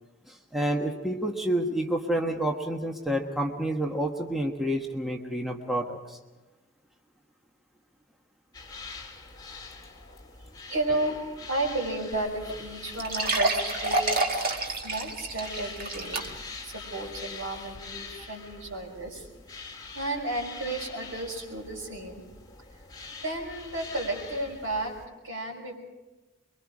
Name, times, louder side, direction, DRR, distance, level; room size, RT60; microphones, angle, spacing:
voice 1, 0.3-6.2, right 1 dB, ahead, 1 dB, 1.3 m, -29 dB
sound 1, 8.5-25.1, left 4 dB, 20° left, 2.3 m, -44 dB
voice 2, 10.1-14.0 14.3-16.3 16.6-19.3 19.5-22.2 22.7-22.8 23.2-24.9 25.2-25.8, right 2 dB, 80° right, 0 dB, 5.8 m, -33 dB
sound 2, 12.1-12.2 12.5-12.6 13.0-16.6 17.1-17.2 17.7-17.8, right 2 dB, 45° right, 1.9 m, -28 dB
24.0 x 23.0 x 4.9 m, 1.1 s
head